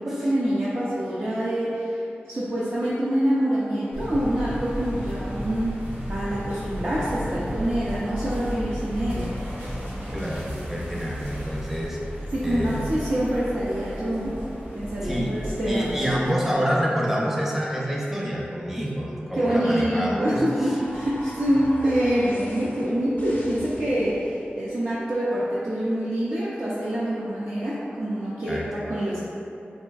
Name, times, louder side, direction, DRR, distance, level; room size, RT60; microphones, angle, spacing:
voice 1, 0.0-2.0 2.3-5.8 6.1-9.3 12.3-14.4 14.7-16.2 19.3-24.1 24.6-29.2, right 1 dB, 60° right, -9 dB, 0.5 m, -26 dB
sound 1, 3.9-16.0, equal, 80° right, 1.3 m, -34 dB
voice 2, 10.1-12.0 12.4-12.9 15.0-20.8 28.4-28.7, equal, 10° right, -4 dB, 0.6 m, -27 dB
sound 2, 19.9-24.5, left 1 dB, 60° left, 0.5 m, -41 dB
4.1 x 2.5 x 2.3 m, 2.8 s
wide cardioid pair, 75°, 4 cm